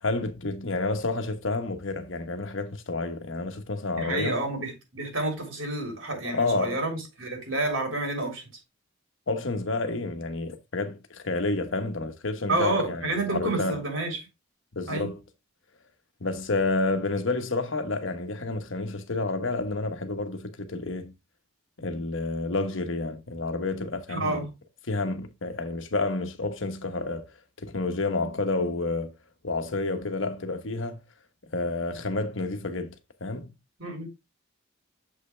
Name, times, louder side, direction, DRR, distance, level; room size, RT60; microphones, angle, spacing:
voice 1, 0.0-4.4 6.3-6.8 9.3-13.8 14.7-15.2 16.2-21.1 21.8-24.4 24.9-27.2 27.6-29.1 29.4-31.0 31.5-32.9 33.2-33.5, left 3 dB, 65° left, 1.1 m, -29 dB
voice 2, 3.9-8.5 12.5-14.2 14.9-15.1 24.1-24.5 33.8-34.1, right 2 dB, 70° right, 3.6 m, -29 dB
7.6 x 5.4 x 3.3 m
head